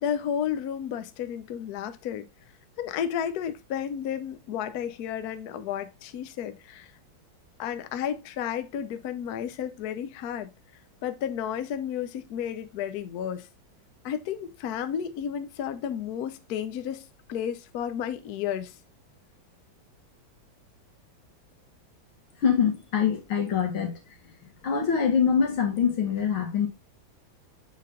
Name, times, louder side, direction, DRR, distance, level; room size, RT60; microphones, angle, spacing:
voice 1, 0.0-2.3 2.8-6.9 7.6-10.5 11.0-13.5 14.0-18.7, left 9 dB, 65° left, 1.0 m, -32 dB
voice 2, 22.4-24.0 24.6-26.7, left 7 dB, 85° left, 2.4 m, -24 dB
7.3 x 4.2 x 3.7 m
omnidirectional pair, 2.2 m